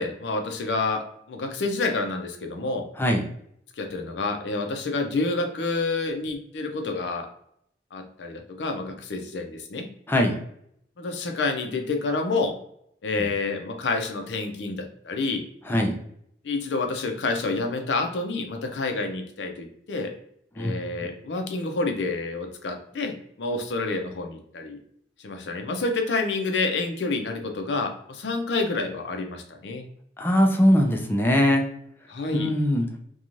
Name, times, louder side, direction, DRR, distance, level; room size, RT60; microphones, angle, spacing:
voice 1, 0.0-2.9 3.8-7.3 7.9-9.9 11.0-12.6 13.0-15.4 16.4-20.1 20.6-24.8 25.2-29.9 32.1-32.5, left 3 dB, 80° left, 5 dB, 0.5 m, -28 dB
voice 2, 15.7-16.0 20.6-20.8 30.2-31.7 32.3-32.9, equal, 10° left, 3 dB, 0.3 m, -21 dB
3.0 x 2.3 x 2.5 m, 0.71 s
head